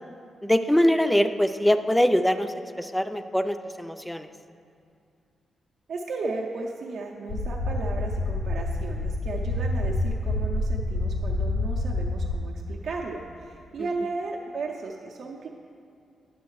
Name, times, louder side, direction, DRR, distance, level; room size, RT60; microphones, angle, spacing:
voice 1, 0.4-4.3 13.8-13.9, equal, 5° left, 9 dB, 0.3 m, -23 dB
voice 2, 5.9-15.5, right 3 dB, 70° right, -1 dB, 0.5 m, -35 dB
sound 1, 7.3-12.3, left 2 dB, 75° left, 0.5 m, -27 dB
9.4 x 6.4 x 3.1 m, 2.4 s
cardioid pair, 100°, 0 cm